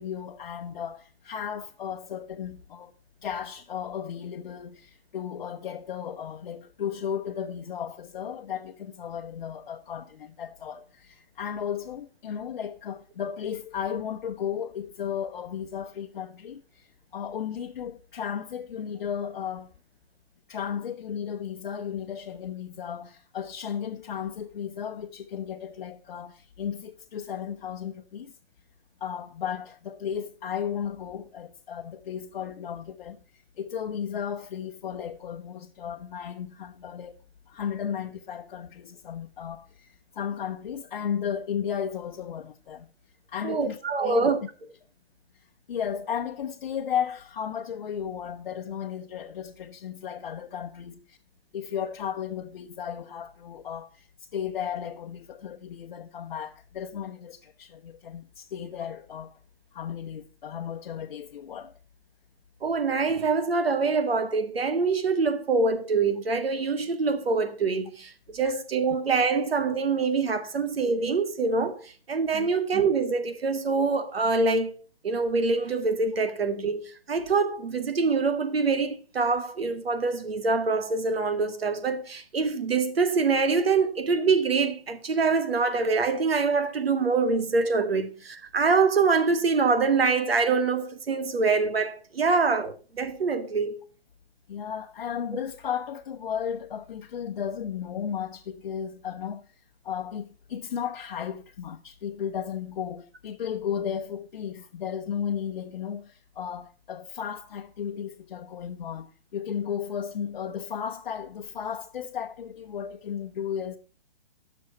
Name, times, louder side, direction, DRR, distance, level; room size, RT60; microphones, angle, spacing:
voice 1, 0.0-2.9 3.2-19.7 20.5-28.4 29.0-33.2 33.6-37.2 37.5-42.9 43.3-44.3 45.7-51.2 51.5-59.4 59.7-61.7 68.4-68.6 72.3-72.5 92.3-92.4 94.5-99.5 99.8-113.8, left 8 dB, 55° left, 0.9 m, -34 dB
voice 2, 43.4-44.4 62.6-74.8 75.0-93.8, right 4 dB, 85° right, 2.0 m, -25 dB
12.5 x 6.3 x 5.6 m
hypercardioid pair, 155°, 29 cm